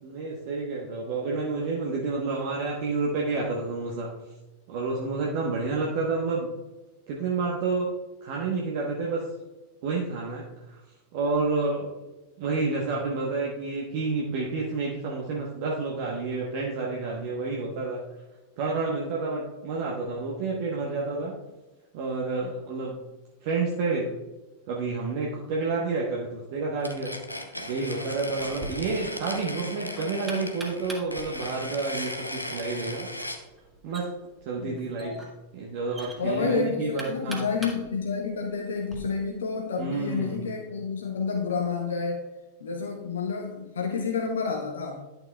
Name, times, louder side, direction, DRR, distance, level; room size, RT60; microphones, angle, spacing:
voice 1, 0.0-4.2 4.7-6.5 7.1-7.9 8.2-9.2 9.8-10.8 11.1-11.9 12.4-18.0 18.6-21.3 21.9-23.0 23.4-24.1 24.7-27.1 27.5-33.1 33.8-34.1 34.4-35.2 35.5-37.5 39.8-40.5, right 3 dB, 50° right, -2 dB, 1.2 m, -29 dB
sound 1, 26.8-33.4, left 1 dB, 85° left, 0.7 m, -37 dB
Knock, 28.4-39.0, right 2 dB, 10° right, 1.6 m, -44 dB
voice 2, 34.6-35.2 36.2-42.2 42.6-45.0, left 5 dB, 65° left, 0 dB, 1.0 m, -29 dB
11.0 x 7.0 x 2.3 m, 1.1 s
figure-of-eight pair, 90°, 0 cm